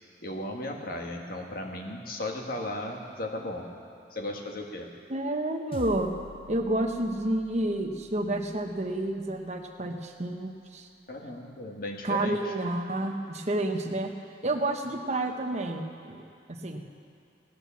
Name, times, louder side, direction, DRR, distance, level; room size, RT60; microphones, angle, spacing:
voice 1, 0.2-3.7 4.1-4.9 11.1-12.5, left 1 dB, 50° left, 2 dB, 1.6 m, -36 dB
voice 2, 5.1-6.1 6.5-10.9 12.0-14.1 14.4-16.2 16.5-16.8, right 1 dB, 40° right, 4 dB, 1.0 m, -30 dB
sound 1, 5.7-10.3, left 3 dB, 30° left, 0.4 m, -48 dB
17.5 x 9.5 x 7.2 m, 2.5 s
head